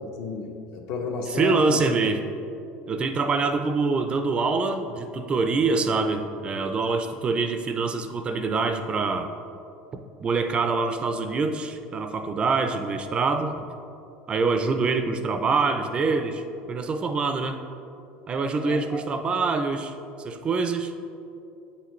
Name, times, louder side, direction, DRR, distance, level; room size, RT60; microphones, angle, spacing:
voice 1, 0.0-1.8 18.6-19.0, left 3 dB, 65° left, 2 dB, 0.9 m, -31 dB
voice 2, 1.3-2.2 2.9-9.3 9.9-13.7 14.3-17.6 18.3-20.9, right 4 dB, 25° right, 7 dB, 0.4 m, -25 dB
8.1 x 5.7 x 3.1 m, 2.7 s
cardioid pair, 140°, 4 cm